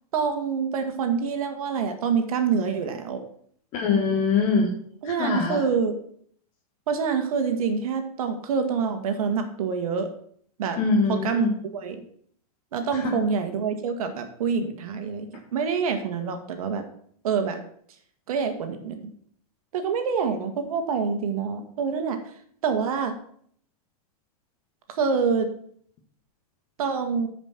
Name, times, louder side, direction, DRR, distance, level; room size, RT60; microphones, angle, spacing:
voice 1, 0.1-3.2 5.0-5.9 6.9-10.1 10.6-10.8 11.1-11.4 11.7-12.0 12.7-16.8 17.2-17.6 18.3-19.0 19.7-22.2 22.6-23.1 24.9-25.5 26.8-27.3, right 6 dB, 65° right, 6 dB, 1.7 m, -26 dB
voice 2, 3.7-4.7 5.0-5.6 10.8-11.5 13.0-13.2, left 4 dB, 35° left, 0 dB, 1.6 m, -23 dB
8.9 x 5.2 x 5.9 m, 0.62 s
hypercardioid pair, 135°, 20 cm